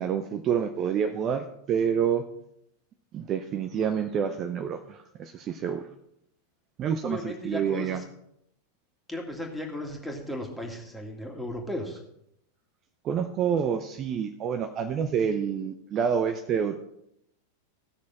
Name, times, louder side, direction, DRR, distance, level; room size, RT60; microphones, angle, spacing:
voice 1, 0.0-2.2 3.1-5.9 6.8-8.0 13.0-16.8, right 7 dB, 30° right, 7 dB, 0.7 m, -28 dB
voice 2, 7.0-8.0 9.1-12.0, left 1 dB, 5° left, 1 dB, 2.1 m, -35 dB
16.5 x 6.4 x 4.2 m, 0.77 s
figure-of-eight pair, 90°, 0 cm